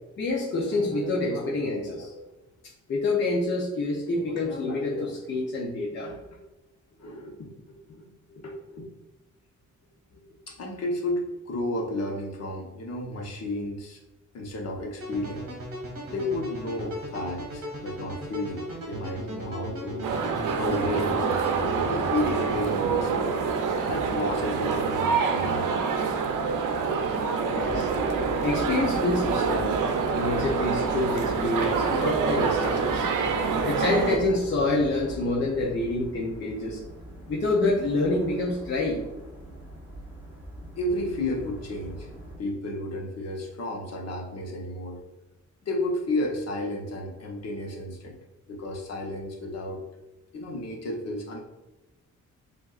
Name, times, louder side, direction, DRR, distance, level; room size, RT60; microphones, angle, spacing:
voice 1, 0.2-2.2 2.9-6.1 27.4-29.7 30.1-33.1 33.6-36.8 37.3-39.0, left 2 dB, 40° left, -4 dB, 0.6 m, -27 dB
voice 2, 6.0-6.4 7.0-8.9 10.1-14.0 14.3-15.5 16.0-20.1 20.5-23.4 23.9-25.8 40.8-42.1 42.4-45.0 45.6-48.2 48.5-49.8 50.3-51.4, left 1 dB, 55° left, 0 dB, 0.9 m, -32 dB
sound 1, 15.0-22.6, equal, 50° right, 1.4 m, -37 dB
sound 2, 20.0-34.2, right 5 dB, 85° right, 0.6 m, -26 dB
sound 3, 27.6-42.4, equal, 5° right, 0.9 m, -40 dB
7.2 x 2.6 x 2.4 m, 1.0 s
wide cardioid pair, 180°, 31 cm